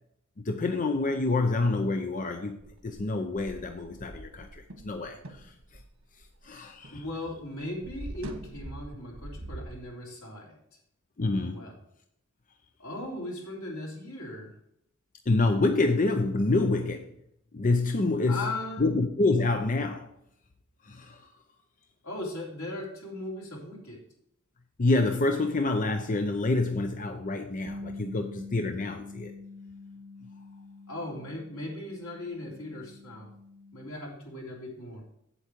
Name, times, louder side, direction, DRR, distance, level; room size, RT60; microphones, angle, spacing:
voice 1, 0.5-2.6 2.8-4.5 4.8-5.2 6.4-7.0 11.2-11.6 15.3-17.0 17.5-18.5 18.8-20.1 20.9-21.2 24.8-29.3, left 2 dB, 40° left, 6 dB, 0.6 m, -27 dB
sound 1, 2.6-7.0 7.3-9.8, right 1 dB, 90° right, 1.5 m, -44 dB
voice 2, 6.9-10.5 11.5-11.7 12.8-14.5 18.3-18.8 22.0-24.0 30.9-33.3 33.7-35.0, left 1 dB, 85° left, -2 dB, 3.3 m, -38 dB
Bass guitar, 27.7-33.9, left 3 dB, 20° right, 1.0 m, -45 dB
8.3 x 8.0 x 4.5 m, 0.75 s
head